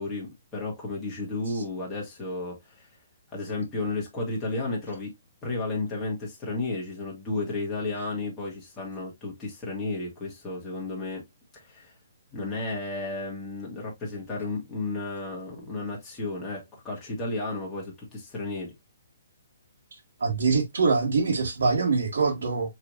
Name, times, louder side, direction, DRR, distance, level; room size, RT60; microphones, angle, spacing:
voice 1, 0.0-2.9 3.3-5.1 5.4-11.2 11.5-11.9 12.3-18.7, left 2 dB, 10° left, 1.6 m, -33 dB
voice 2, 20.2-22.7, right 4 dB, 85° right, 1.4 m, -24 dB
4.7 x 3.2 x 2.6 m
hypercardioid pair, 160°, 0 cm